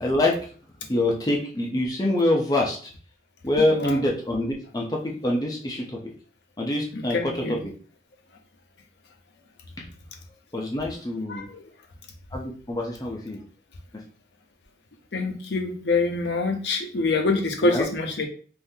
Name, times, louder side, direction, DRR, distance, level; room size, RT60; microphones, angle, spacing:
voice 1, 0.0-0.4 0.9-2.9 3.4-5.8 6.6-7.7 9.8-9.9 10.5-11.4 12.3-13.4 17.6-17.9, left 1 dB, 20° left, -1 dB, 0.5 m, -25 dB
voice 2, 3.7-4.0 6.9-7.6 11.3-11.6 15.1-18.3, left 3 dB, 75° left, 4 dB, 0.7 m, -25 dB
3.6 x 2.5 x 2.7 m, 0.42 s
head